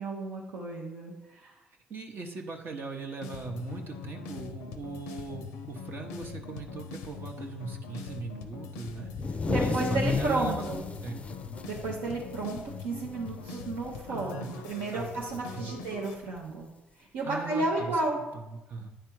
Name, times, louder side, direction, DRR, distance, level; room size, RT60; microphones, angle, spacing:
voice 1, 0.0-1.5 9.5-10.8 11.7-16.7 17.0-18.2, right 2 dB, 85° right, -4 dB, 0.9 m, -32 dB
voice 2, 1.9-10.6 11.0-11.2 14.1-14.6 14.9-15.2 15.5-15.8 17.2-18.0 18.3-18.9, right 4 dB, 60° right, 2 dB, 0.8 m, -40 dB
sound 1, 3.2-16.1, left 5 dB, 90° left, 0.4 m, -42 dB
sound 2, 9.1-12.8 13.1-13.3 13.6-14.1 15.2-15.3 16.4-16.5, left 4 dB, 30° left, 0.4 m, -32 dB
9.0 x 3.4 x 4.5 m, 1.0 s
supercardioid pair, 55°, 4 cm